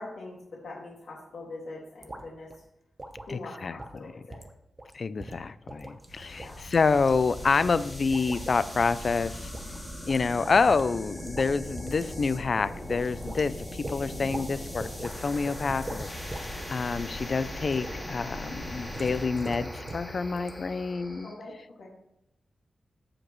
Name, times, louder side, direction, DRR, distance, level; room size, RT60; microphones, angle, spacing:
voice 1, 0.0-2.6 3.3-4.4 6.3-6.6 14.0-14.7 21.2-21.9, left 2 dB, 80° left, -4 dB, 2.1 m, -43 dB
sound 1, 2.0-2.3 2.5-2.6 3.0-3.4 3.8-4.0 4.3-4.5 4.8-4.9 5.2-6.1 6.4-7.1 7.7-7.8 8.1-8.6 9.1-9.3 9.5-10.9 11.2-11.5 11.8-12.1 12.4-12.5 12.9-13.4 13.8-14.5 14.8-15.1 15.5-16.5 16.8-17.1 17.7-18.0 18.9-20.1 20.4-20.5, right 1 dB, 20° right, 0.9 m, -40 dB
voice 2, 3.3-4.1 4.9-9.5 10.1-21.3, left 4 dB, 45° left, 15 dB, 0.4 m, -28 dB
sound 2, 6.0-21.3, left 1 dB, 15° left, 2.3 m, -39 dB
14.5 x 5.1 x 3.1 m, 0.82 s
wide cardioid pair, 130°, 0 cm